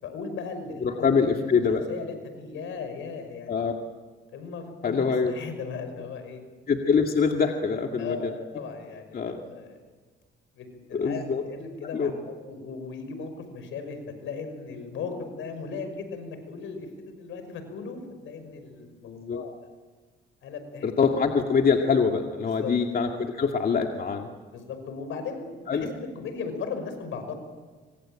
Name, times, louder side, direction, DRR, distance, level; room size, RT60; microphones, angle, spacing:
voice 1, 0.0-1.6 1.9-3.7 4.3-6.4 8.0-9.8 10.5-12.1 12.5-19.5 20.4-20.9 22.4-22.7 24.5-27.3, left 5 dB, 80° left, 8 dB, 5.9 m, -37 dB
voice 2, 0.8-1.8 3.5-3.7 4.8-5.3 6.7-8.3 9.1-9.4 10.9-11.4 11.9-12.3 19.1-19.4 20.8-24.3 25.7-25.9, left 5 dB, 50° left, 3 dB, 2.2 m, -24 dB
25.5 x 25.0 x 9.0 m, 1.4 s
cardioid pair, 90°, 20 cm